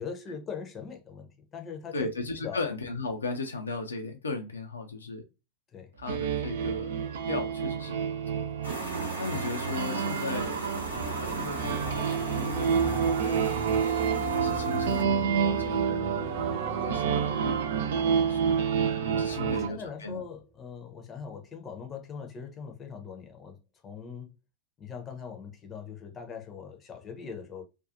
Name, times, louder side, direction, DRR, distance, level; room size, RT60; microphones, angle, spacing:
voice 1, 0.0-2.7 5.7-5.9 9.3-9.4 19.3-24.3 24.8-27.6, left 6 dB, 25° left, 0.6 m, -41 dB
voice 2, 1.9-5.2 6.0-8.5 9.2-10.7 10.9-13.4 14.3-16.4 16.7-20.2, left 3 dB, 75° left, 0.4 m, -37 dB
sound 1, 6.1-19.7, right 7 dB, 60° right, 0.4 m, -29 dB
sound 2, 8.6-15.0, right 1 dB, 85° right, 1.0 m, -38 dB
sound 3, 10.3-19.7 20.0-20.3, right 3 dB, 35° right, 0.8 m, -38 dB
2.5 x 2.3 x 2.5 m
figure-of-eight pair, 90°, 0 cm